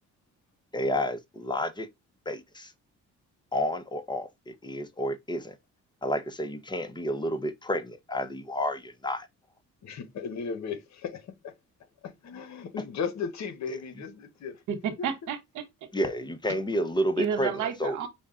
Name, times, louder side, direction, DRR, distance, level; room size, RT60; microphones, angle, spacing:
voice 1, 0.7-1.9 2.3-2.7 3.5-5.5 6.0-9.3 15.9-17.5 17.8-18.1, equal, 15° left, 0.8 m, -30 dB
voice 2, 9.8-11.5 12.0-14.6 15.0-15.1, left 6 dB, 65° left, 1.0 m, -36 dB
voice 3, 14.7-15.9 17.2-18.1, right 7 dB, 80° right, 1.1 m, -31 dB
5.4 x 2.3 x 3.7 m
cardioid pair, 90°, 30 cm